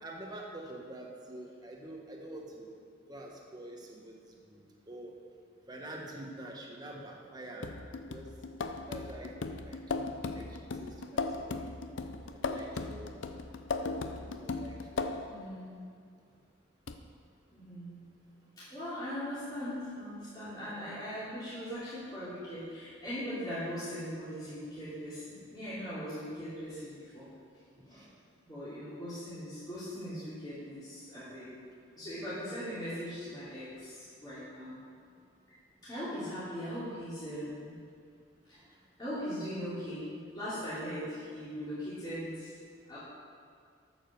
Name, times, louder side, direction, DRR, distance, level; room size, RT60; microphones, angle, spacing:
voice 1, 0.0-2.7 3.1-4.2 4.5-4.6 4.9-5.1 5.7-7.7 8.1-8.3 8.9-9.3 9.6-10.0 10.3-11.6 12.3-13.2 14.2-15.2 27.9-28.1, right 1 dB, 20° right, 0 dB, 1.2 m, -46 dB
sound 1, 7.6-15.4 16.9-17.0, left 3 dB, 70° left, 0.6 m, -37 dB
voice 2, 15.3-15.8 17.5-18.0 18.6-27.2 27.9-28.0 28.5-31.5 32.0-34.7 35.8-37.7 39.0-40.0 40.3-42.6 42.9-43.0, equal, 20° left, -14 dB, 3.0 m, -40 dB
8.9 x 7.6 x 6.5 m, 2.2 s
head